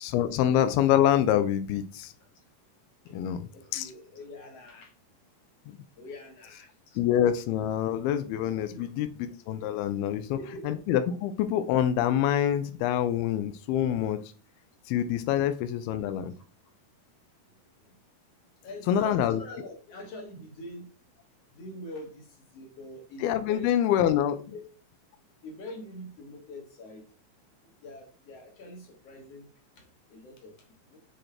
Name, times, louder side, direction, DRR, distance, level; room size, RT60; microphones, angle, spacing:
voice 1, 0.0-2.1 3.1-3.9 5.7-5.8 7.0-10.4 10.6-14.2 14.9-16.3 18.9-19.4 23.2-24.4, left 10 dB, 90° left, 10 dB, 2.6 m, -26 dB
voice 2, 3.1-4.9 6.0-7.0 8.7-8.9 10.2-10.7 18.6-20.9 21.5-23.7 24.5-24.6 25.4-27.0 27.8-29.5 29.8-30.5 30.9-31.0, left 1 dB, 60° left, 2 dB, 1.8 m, -44 dB
8.6 x 4.3 x 3.3 m, 0.37 s
omnidirectional pair, 4.3 m